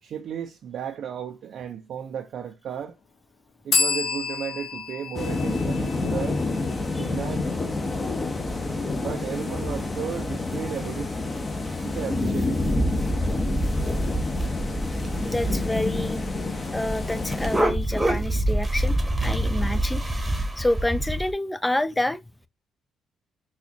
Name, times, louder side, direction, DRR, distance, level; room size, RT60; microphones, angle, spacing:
voice 1, 0.0-3.0 3.6-6.4 7.0-7.6 9.0-11.1 11.8-12.6, right 8 dB, 70° right, 0.5 m, -34 dB
sound 1, 3.7-7.3, left 5 dB, 65° left, 0.9 m, -29 dB
sound 2, 5.1-17.6, left 3 dB, 25° left, 0.8 m, -28 dB
sound 3, 8.5-8.6 9.1-9.4 9.9-10.0 10.3-10.4 10.6-11.0 11.4-11.5 11.7-11.8 12.1-21.3, right 1 dB, 10° right, 1.0 m, -27 dB
voice 2, 15.2-16.3 16.7-22.2, left 1 dB, 10° left, 0.4 m, -28 dB
4.2 x 2.4 x 2.8 m
cardioid pair, 90°, 0 cm